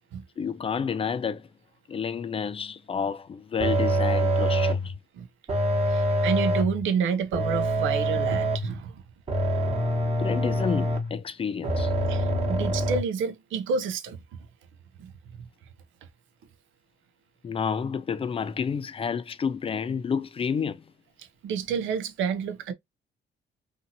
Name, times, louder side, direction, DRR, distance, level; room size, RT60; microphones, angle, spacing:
voice 1, 0.4-1.5 1.9-4.9 10.2-11.9 17.4-20.8, left 6 dB, 30° left, 0.4 m, -30 dB
sound 1, 3.6-4.9 5.5-6.8 7.3-8.8 9.3-11.2 11.6-13.0, right 1 dB, 30° right, 1.1 m, -25 dB
voice 2, 5.9-9.0 12.1-14.2 15.0-15.1 21.2-22.7, right 6 dB, 80° right, 0.6 m, -29 dB
2.7 x 2.7 x 2.6 m
cardioid pair, 90°, 20 cm